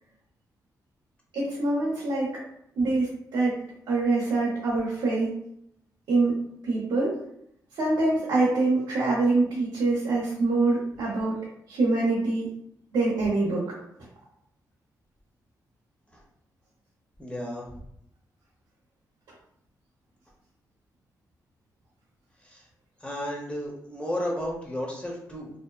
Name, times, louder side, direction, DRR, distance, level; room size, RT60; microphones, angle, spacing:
voice 1, 1.3-2.4 2.8-3.6 3.9-5.3 6.1-7.2 7.7-11.4 11.7-12.5 12.9-13.7, right 3 dB, 85° right, -6 dB, 0.7 m, -25 dB
voice 2, 17.2-17.7 22.4-22.6 23.0-25.5, left 1 dB, 15° left, -3 dB, 0.9 m, -33 dB
2.6 x 2.1 x 2.3 m, 0.73 s
cardioid pair, 65°, 7 cm